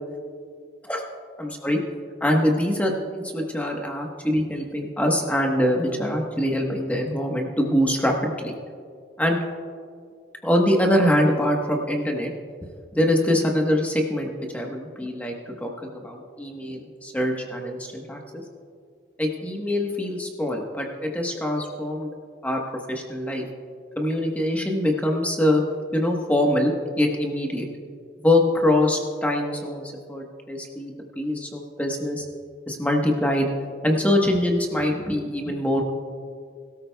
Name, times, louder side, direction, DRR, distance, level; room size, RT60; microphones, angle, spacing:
voice 1, 1.4-1.8 2.2-8.5 9.2-9.4 10.4-12.3 12.9-18.4 19.2-22.1 22.4-22.6 22.9-23.4 24.0-25.6 25.9-27.6 28.2-32.2 32.7-33.5 33.8-35.8, left 1 dB, 10° left, 1 dB, 1.1 m, -24 dB
22.0 x 13.0 x 2.3 m, 2.2 s
head